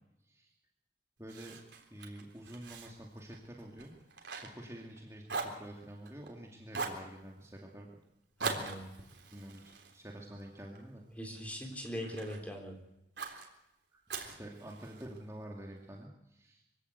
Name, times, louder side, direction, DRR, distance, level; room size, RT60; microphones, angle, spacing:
voice 1, 1.2-1.6 1.9-3.9 4.5-7.9 9.3-9.6 9.9-11.0 11.5-11.7 13.9-16.6, right 1 dB, 15° right, -1 dB, 2.4 m, -48 dB
Fire, 1.3-5.0 5.3-6.3 6.7-7.1 8.4-10.8 11.3-12.4 13.2-13.5 14.1-15.2, right 4 dB, 80° right, 3.7 m, -42 dB
voice 2, 8.4-8.9 11.2-12.8, equal, 10° left, 3 dB, 4.0 m, -41 dB
24.0 x 17.0 x 8.1 m, 0.86 s
head